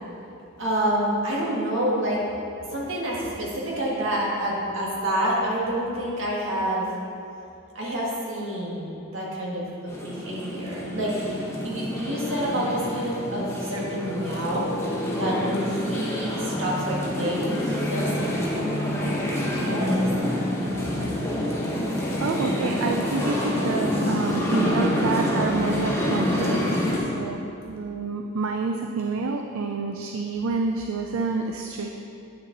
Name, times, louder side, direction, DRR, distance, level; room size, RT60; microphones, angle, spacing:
voice 1, 0.6-2.2 2.7-6.8 7.8-14.6 15.1-18.5 18.8-20.1, right 1 dB, 65° right, -5 dB, 1.8 m, -28 dB
sound 1, 9.9-27.0, left 1 dB, 15° left, 1.2 m, -27 dB
voice 2, 22.2-31.9, right 4 dB, 80° right, 3 dB, 0.4 m, -28 dB
9.0 x 6.6 x 3.9 m, 2.7 s
head